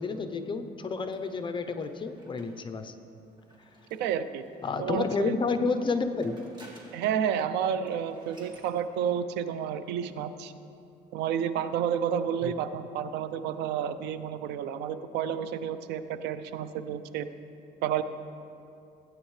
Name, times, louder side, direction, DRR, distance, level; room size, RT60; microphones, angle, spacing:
voice 1, 0.0-2.9 4.6-6.4 12.4-12.5, left 4 dB, 30° left, 8 dB, 0.7 m, -30 dB
sound 1, 1.1-4.8 5.7-7.3 7.6-7.7 7.9-8.7, right 1 dB, 25° right, 1.9 m, -56 dB
voice 2, 3.9-4.4 4.8-5.4 6.9-10.5 11.1-17.3 17.8-18.0, right 8 dB, 85° right, 12 dB, 0.5 m, -30 dB
16.5 x 8.9 x 3.2 m, 2.7 s
cardioid pair, 110°, 17 cm